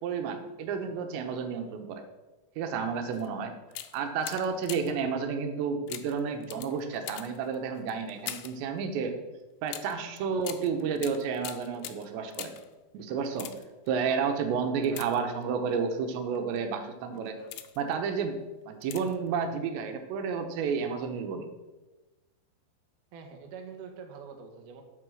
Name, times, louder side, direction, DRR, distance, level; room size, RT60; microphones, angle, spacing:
voice 1, 0.0-2.0 2.6-3.5 3.9-9.2 9.6-12.5 12.9-13.5 13.9-17.4 17.8-18.4 18.6-21.5, right 6 dB, 85° right, 6 dB, 3.2 m, -31 dB
sound 1, 3.1-3.3 3.7-5.1 5.9-8.7 9.7-12.7 13.2-13.9 14.8-15.7 16.3-16.6 17.1-17.9 18.8-19.3 19.5-19.6, left 13 dB, 90° left, 2.1 m, -43 dB
voice 2, 14.9-15.6 23.1-24.8, right 6 dB, 65° right, 4 dB, 2.1 m, -46 dB
11.0 x 4.7 x 6.3 m, 1.1 s
omnidirectional pair, 5.0 m